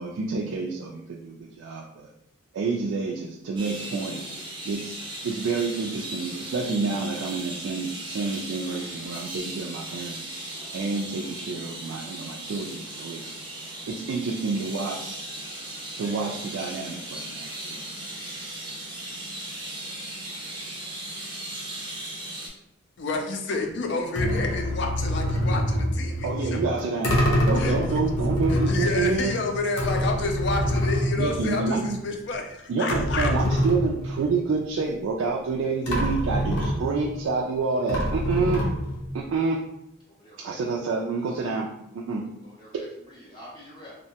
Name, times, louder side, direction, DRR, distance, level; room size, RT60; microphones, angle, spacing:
voice 1, 0.0-2.1 2.5-4.2 4.6-10.2 10.7-13.4 13.9-15.3 16.0-17.8 26.2-29.4 31.2-32.0 32.7-38.6 39.1-39.6 40.4-42.2, right 4 dB, 75° right, -1 dB, 0.3 m, -28 dB
sound 1, 3.6-22.5, right 1 dB, 25° right, 0.5 m, -37 dB
voice 2, 23.0-26.3 27.6-27.8 28.5-33.3, left 3 dB, 55° left, 3 dB, 0.4 m, -29 dB
sound 2, 24.1-32.0 32.3-32.4 32.9-34.5 35.5-35.6 35.9-37.2 37.9-39.2, equal, 90° left, 0.7 m, -26 dB
voice 3, 40.1-40.6 42.4-43.9, equal, 20° left, -5 dB, 0.7 m, -47 dB
2.7 x 2.1 x 2.7 m, 0.81 s
head